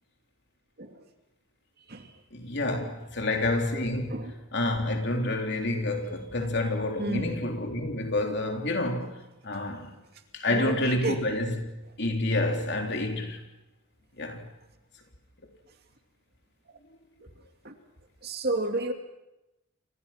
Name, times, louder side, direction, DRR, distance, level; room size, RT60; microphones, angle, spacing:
voice 1, 2.3-4.2 4.5-9.1 9.4-9.9 10.3-13.4 14.2-14.5, left 2 dB, 50° left, 3.5 m, -28 dB
voice 2, 7.0-7.5 10.5-11.3 17.6-17.7 18.2-18.9, right 2 dB, 45° right, 2.6 m, -31 dB
29.0 x 26.0 x 5.9 m
head